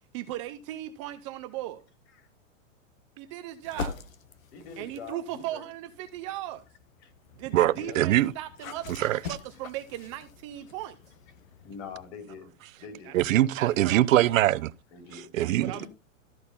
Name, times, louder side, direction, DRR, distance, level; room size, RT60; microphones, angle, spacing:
voice 1, 0.1-1.8 3.2-3.9 4.8-6.6 7.3-11.0 13.0-13.1 13.5-14.4 15.4-15.9, right 13 dB, 25° right, 0.5 m, -37 dB
sound 1, 3.6-5.2 5.9-12.1, left 5 dB, 85° left, 1.3 m, -43 dB
voice 2, 4.5-5.6 7.0-7.1 7.7-8.0 11.6-13.2 14.9-15.3 15.6-15.9, left 5 dB, 50° left, 3.7 m, -44 dB
voice 3, 7.5-8.3 9.0-9.2 13.1-14.7 15.3-15.9, right 14 dB, 75° right, 0.7 m, -23 dB
13.5 x 4.6 x 5.4 m
supercardioid pair, 155°, 40 cm